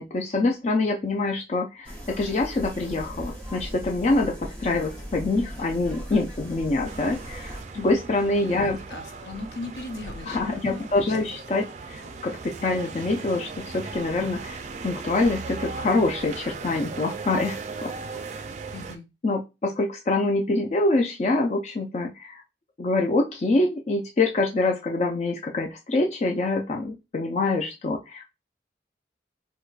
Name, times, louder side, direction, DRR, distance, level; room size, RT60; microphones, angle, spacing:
voice 1, 0.0-8.8 10.3-17.9 18.4-18.5 19.2-22.4 22.8-28.4, left 2 dB, 40° left, 1 dB, 0.4 m, -25 dB
sound 1, 1.8-7.6, equal, 10° left, 0.7 m, -38 dB
sound 2, 6.8-19.0, right 4 dB, 40° right, 0.3 m, -38 dB
voice 2, 8.5-11.3 18.7-19.1, left 2 dB, 70° left, 6 dB, 0.7 m, -39 dB
4.6 x 2.2 x 2.3 m, 0.26 s
head